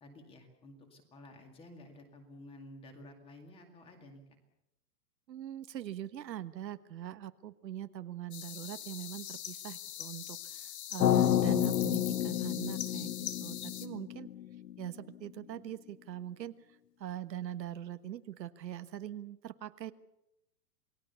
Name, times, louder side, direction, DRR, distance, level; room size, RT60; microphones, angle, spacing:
voice 1, 0.0-4.2 11.7-11.9 12.3-12.5, left 1 dB, 10° left, 5 dB, 2.2 m, -53 dB
voice 2, 5.3-13.1 13.4-14.3 14.8-19.9, right 11 dB, 85° right, 11 dB, 1.5 m, -42 dB
sound 1, 8.3-13.9, left 11 dB, 40° left, 1.4 m, -43 dB
sound 2, 11.0-15.1, left 11 dB, 75° left, 1.1 m, -30 dB
28.0 x 19.0 x 7.0 m, 0.86 s
hypercardioid pair, 175°, 49 cm